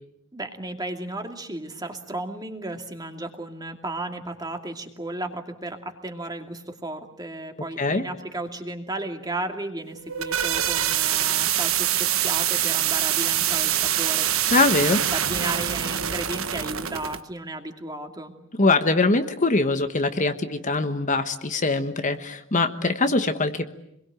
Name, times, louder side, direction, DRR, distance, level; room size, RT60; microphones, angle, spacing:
voice 1, 0.3-14.3 14.8-18.3, right 2 dB, 20° right, 4 dB, 2.6 m, -34 dB
sound 1, 9.9-17.2, right 11 dB, 80° right, 1.4 m, -24 dB
voice 2, 14.5-15.0 18.6-23.7, left 3 dB, 35° left, 8 dB, 1.3 m, -22 dB
27.5 x 22.0 x 9.0 m, 0.81 s
head